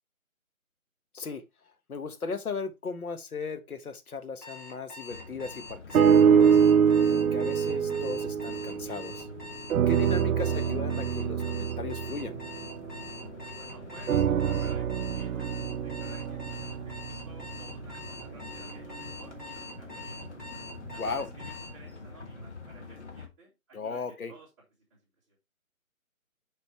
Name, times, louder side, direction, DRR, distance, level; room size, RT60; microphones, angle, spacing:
voice 1, 1.1-6.6 7.1-9.3 9.9-12.4 21.0-21.3 23.7-24.3, left 4 dB, 90° left, 1.3 m, -37 dB
Alarm, 4.4-21.7, left 3 dB, 10° left, 1.0 m, -44 dB
sound 1, 5.1-23.3, left 3 dB, 50° left, 1.4 m, -46 dB
sound 2, 5.9-9.3 9.7-13.4 14.1-18.3 18.9-19.0, right 7 dB, 75° right, 0.5 m, -25 dB
voice 2, 13.5-20.2 20.9-24.5 24.9-25.0 25.3-25.4, right 2 dB, 15° right, 2.0 m, -54 dB
6.0 x 5.3 x 3.2 m
hypercardioid pair, 170°, 42 cm